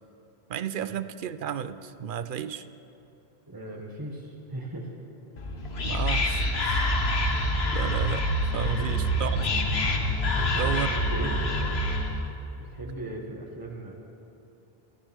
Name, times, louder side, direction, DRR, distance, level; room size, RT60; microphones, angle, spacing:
voice 1, 0.5-2.6 5.8-6.9 7.7-8.2 8.5-9.4 10.6-10.9 11.2-11.3, right 8 dB, 60° right, 13 dB, 0.7 m, -32 dB
voice 2, 3.5-4.9 8.6-9.0 10.4-11.8 12.6-13.9, right 1 dB, 20° right, -1 dB, 1.5 m, -38 dB
Whispering, 5.4-12.3, left 1 dB, 85° left, 1.5 m, -26 dB
26.5 x 13.5 x 3.6 m, 2.9 s
omnidirectional pair, 1.0 m